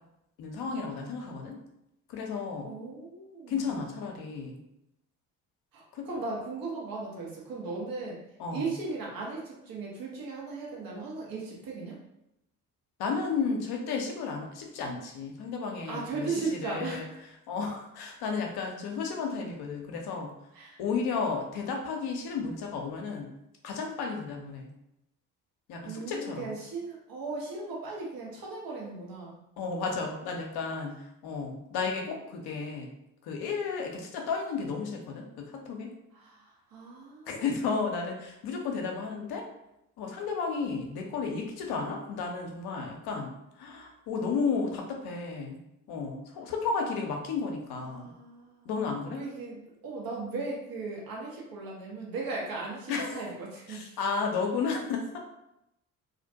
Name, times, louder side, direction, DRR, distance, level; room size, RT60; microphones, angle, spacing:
voice 1, 0.4-1.6 2.1-2.7 3.5-4.6 5.9-6.1 8.4-8.7 13.0-17.1 17.5-20.3 20.8-23.3 23.6-24.7 25.7-26.5 29.6-31.0 31.2-32.9 33.2-35.9 37.3-39.4 40.0-43.3 43.6-45.6 45.9-48.1 48.7-49.2 52.9-53.3 53.7-55.2, left 5 dB, 60° left, 2 dB, 0.7 m, -33 dB
voice 2, 2.6-3.8 5.7-8.2 8.5-12.0 15.9-17.2 20.5-20.8 25.8-29.4 36.1-37.9 47.7-48.8 49.2-54.0, right 3 dB, 50° right, -3 dB, 1.1 m, -37 dB
2.4 x 2.1 x 2.7 m, 0.85 s
hypercardioid pair, 50°, 44 cm